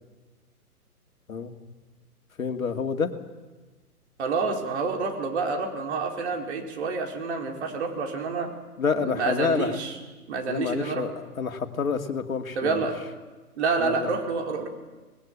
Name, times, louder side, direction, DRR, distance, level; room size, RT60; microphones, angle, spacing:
voice 1, 2.4-3.1 8.8-9.8 10.5-11.1 11.4-12.9 13.8-14.1, left 5 dB, 60° left, 6 dB, 2.4 m, -28 dB
voice 2, 4.2-8.5 9.0-10.0 10.3-11.0 12.5-13.0 13.6-14.7, right 4 dB, 45° right, 2 dB, 4.6 m, -28 dB
25.0 x 20.0 x 8.8 m, 1.2 s
figure-of-eight pair, 130°, 46 cm